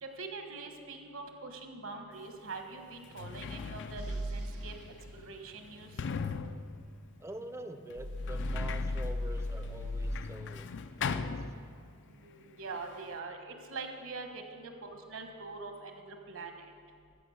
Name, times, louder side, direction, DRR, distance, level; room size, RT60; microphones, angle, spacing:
voice 1, 0.0-4.7 5.1-5.9 12.1-16.7, right 3 dB, 65° right, 5 dB, 1.2 m, -44 dB
Sliding door, 2.2-2.3 2.9-12.1 12.4-13.2, left 5 dB, 55° left, 0.4 m, -41 dB
sound 1, 4.0-4.5 8.0-10.1, left 1 dB, 80° right, 0.9 m, -35 dB
voice 2, 7.2-11.4, right 1 dB, 10° right, 8 dB, 0.5 m, -45 dB
14.5 x 6.0 x 6.4 m, 2.2 s
head